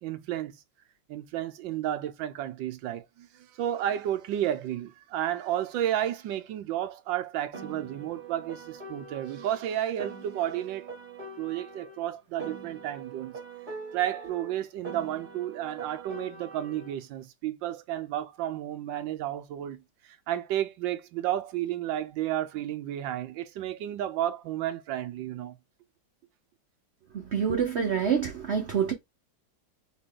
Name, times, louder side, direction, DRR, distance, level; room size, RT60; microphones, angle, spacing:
voice 1, 0.0-0.5 1.1-10.9 11.4-13.4 13.9-19.8 20.1-25.6, right 12 dB, 90° right, 1.3 m, -32 dB
Piano, 7.5-12.0 12.4-17.0, right 4 dB, 35° right, 0.9 m, -43 dB
voice 2, 27.1-28.9, right 7 dB, 70° right, 0.6 m, -27 dB
4.2 x 3.0 x 3.7 m
omnidirectional pair, 2.0 m